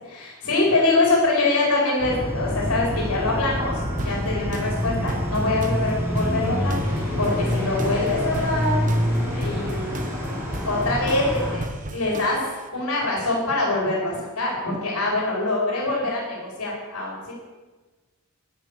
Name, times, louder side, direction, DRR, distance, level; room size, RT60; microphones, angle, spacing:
voice 1, 0.0-8.8 9.3-9.9 10.7-11.6 11.9-12.4 12.7-17.3, left 2 dB, 85° left, -3 dB, 4.5 m, -24 dB
sound 1, 2.0-11.6, equal, 10° right, 4.0 m, -26 dB
sound 2, 4.0-12.7, right 1 dB, 35° right, 1.0 m, -37 dB
12.0 x 10.5 x 6.6 m, 1.3 s
head